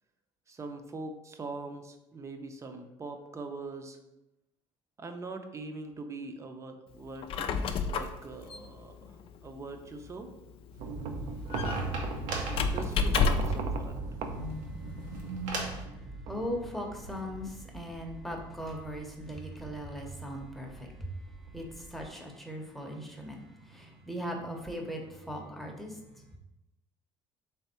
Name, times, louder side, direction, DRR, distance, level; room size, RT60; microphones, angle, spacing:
voice 1, 0.5-4.0 5.0-7.5 7.8-10.3 12.7-14.0, right 3 dB, 25° right, 6 dB, 0.6 m, -42 dB
Squeak, 7.1-13.7, left 5 dB, 60° left, 0.4 m, -32 dB
sound 1, 10.7-15.8, right 2 dB, 90° right, 0.9 m, -40 dB
sound 2, 10.8-22.1, right 3 dB, 70° right, 0.5 m, -39 dB
voice 2, 14.7-15.2 16.3-26.2, equal, ahead, 1 dB, 0.8 m, -39 dB
3.5 x 3.4 x 4.2 m, 0.93 s
cardioid pair, 100°, 11 cm